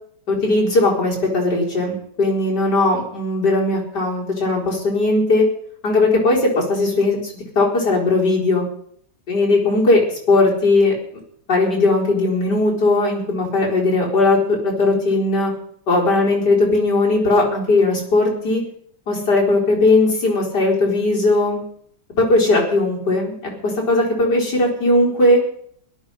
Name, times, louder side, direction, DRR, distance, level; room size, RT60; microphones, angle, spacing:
voice 1, 0.3-5.4 5.8-8.6 9.3-10.0 10.3-10.9 11.5-15.5 15.9-18.6 19.1-21.6 22.2-23.4 23.6-25.4, left 2 dB, 75° left, -3 dB, 5.0 m, -18 dB
17.5 x 12.0 x 5.7 m, 0.65 s
omnidirectional pair, 1.9 m